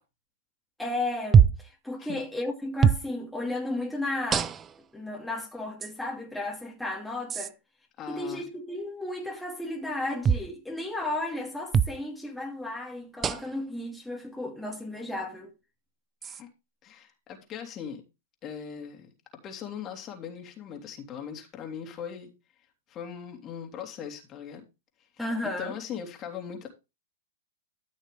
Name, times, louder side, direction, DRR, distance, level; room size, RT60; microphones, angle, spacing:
voice 1, 0.8-4.5 4.9-7.5 8.1-15.5 25.2-25.7, left 2 dB, ahead, 2.7 m, -34 dB
sound 1, 1.3-1.7 2.8-3.1 4.3-4.8 5.8-5.9 7.3-7.5 10.2-10.5 11.7-12.0 13.2-13.6 14.7-14.8 16.2-16.4, right 7 dB, 25° right, 0.6 m, -22 dB
voice 2, 8.0-8.4 16.2-16.5 16.8-18.0 18.4-19.1 19.4-22.3 22.9-24.6 25.6-26.7, left 8 dB, 30° left, 3.1 m, -39 dB
14.0 x 6.3 x 3.4 m
hypercardioid pair, 115°, 0 cm